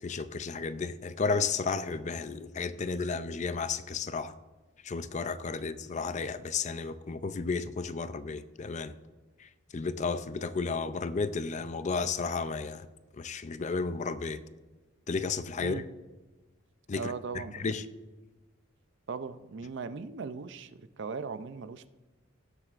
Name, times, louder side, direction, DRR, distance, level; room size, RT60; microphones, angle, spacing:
voice 1, 0.0-4.3 4.8-8.9 9.4-12.9 13.2-14.4 15.1-15.8 16.9-17.1 17.5-17.9, left 4 dB, 35° left, 0.4 m, -33 dB
voice 2, 17.0-17.7 19.1-21.9, right 5 dB, 60° right, 0.5 m, -38 dB
18.0 x 7.5 x 2.5 m
head